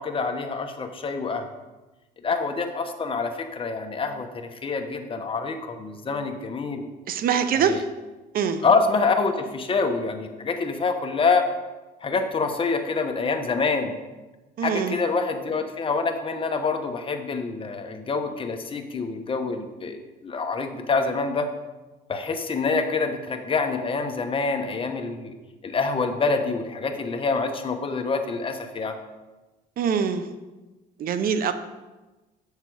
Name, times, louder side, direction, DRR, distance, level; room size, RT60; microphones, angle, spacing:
voice 1, 0.0-1.5 2.2-6.9 7.5-7.8 8.6-11.5 12.0-13.9 14.6-21.5 22.1-25.3 25.6-28.9, left 4 dB, 30° left, 5 dB, 1.1 m, -26 dB
voice 2, 7.1-7.8 8.3-8.6 14.6-15.0 29.8-30.3 31.0-31.5, right 7 dB, 60° right, 10 dB, 0.8 m, -23 dB
9.0 x 6.7 x 4.8 m, 1.1 s
cardioid pair, 110°, 17 cm